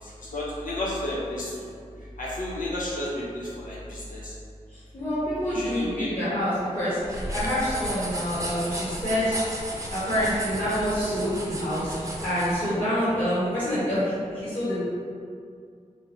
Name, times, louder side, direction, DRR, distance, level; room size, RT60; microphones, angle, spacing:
voice 1, 0.3-1.5 2.2-4.3 5.5-6.3, left 1 dB, 80° left, -6 dB, 0.9 m, -32 dB
voice 2, 4.9-9.4 9.9-11.9 12.2-14.8, equal, 40° left, -12 dB, 1.4 m, -27 dB
sound 1, 7.0-12.6, right 1 dB, 25° right, 0.8 m, -34 dB
3.8 x 2.0 x 4.0 m, 2.3 s
cardioid pair, 45°, 14 cm